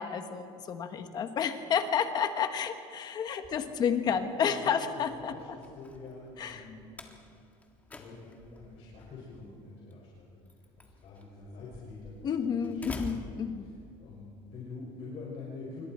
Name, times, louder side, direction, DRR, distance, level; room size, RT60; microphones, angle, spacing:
voice 1, 0.0-5.3 6.4-6.7 12.2-13.7, left 7 dB, 35° left, 8 dB, 1.4 m, -30 dB
Slam, 3.3-14.2, left 2 dB, 10° left, 1.6 m, -49 dB
voice 2, 4.5-7.2 7.9-10.4 10.8-12.9 14.0-15.9, left 3 dB, 50° left, -5 dB, 6.1 m, -46 dB
27.0 x 24.0 x 4.5 m, 2.6 s
cardioid pair, 170°, 12 cm